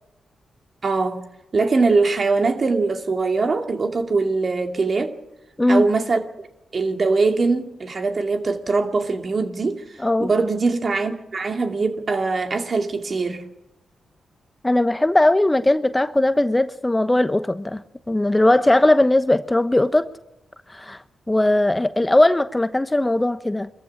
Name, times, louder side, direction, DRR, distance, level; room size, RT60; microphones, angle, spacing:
voice 1, 0.8-1.2 1.5-5.1 5.7-6.5 6.7-9.8 10.2-13.4, right 3 dB, 50° right, 2.5 m, -22 dB
voice 2, 14.6-20.1 20.7-21.0 21.3-23.7, left 1 dB, 15° left, 1.0 m, -19 dB
23.0 x 14.5 x 8.7 m
supercardioid pair, 45°, 0 cm